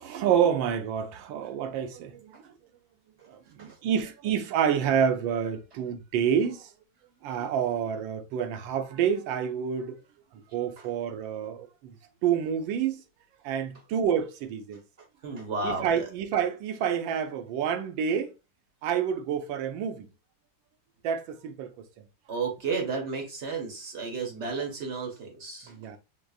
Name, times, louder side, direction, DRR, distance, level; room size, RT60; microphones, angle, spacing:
voice 1, 0.0-2.4 3.2-6.7 7.2-10.0 10.3-11.9 12.2-13.0 13.4-14.8 15.6-18.3 18.8-20.1 21.0-21.7 22.0-22.1 24.5-24.7 25.7-26.0, right 8 dB, 90° right, 1.4 m, -28 dB
voice 2, 15.2-16.1 22.3-25.7, right 4 dB, 55° right, 0.8 m, -33 dB
5.3 x 2.0 x 2.3 m
omnidirectional pair, 2.0 m